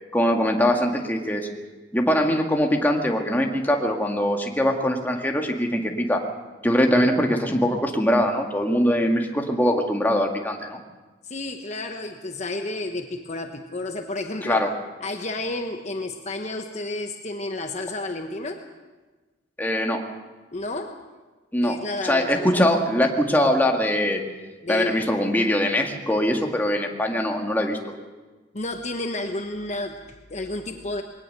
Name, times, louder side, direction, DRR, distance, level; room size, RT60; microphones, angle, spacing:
voice 1, 0.1-1.5 1.9-6.2 6.6-10.8 14.4-14.7 19.6-20.0 21.5-21.8 22.0-24.2 24.7-27.8, equal, 10° left, 2 dB, 1.9 m, -22 dB
voice 2, 11.2-14.6 15.0-18.7 20.5-21.1 21.6-22.6 24.6-25.1 28.5-31.0, left 2 dB, 40° left, 4 dB, 1.1 m, -31 dB
21.0 x 18.5 x 6.7 m, 1.3 s
head